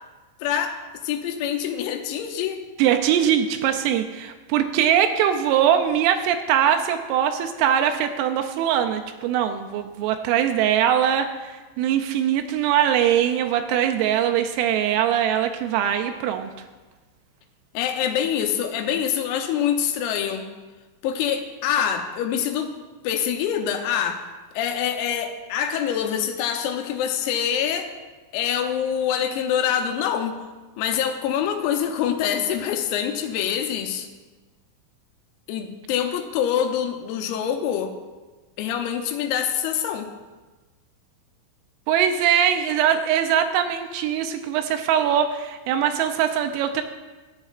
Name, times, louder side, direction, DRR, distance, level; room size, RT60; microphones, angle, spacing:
voice 1, 0.4-0.8 1.0-2.6 17.7-20.5 21.0-22.7 23.0-24.2 24.5-27.9 28.3-30.4 30.8-34.1 35.5-37.9 38.6-40.1, left 9 dB, 85° left, 5 dB, 3.5 m, -25 dB
voice 2, 2.8-16.5 41.9-46.8, right 9 dB, 85° right, 6 dB, 3.0 m, -22 dB
14.5 x 9.1 x 2.4 m, 1.2 s
omnidirectional pair, 6.0 m